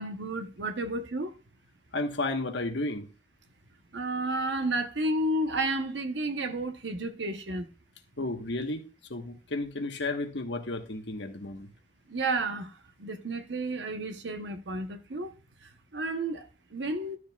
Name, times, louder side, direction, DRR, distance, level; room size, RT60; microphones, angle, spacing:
voice 1, 0.0-1.3 3.9-7.7 12.1-12.7 13.0-15.3 15.6-17.2, right 2 dB, 85° right, 1.0 m, -31 dB
voice 2, 1.9-3.1 8.2-8.8 9.1-11.7, left 2 dB, 85° left, 1.3 m, -32 dB
12.0 x 6.4 x 2.4 m
head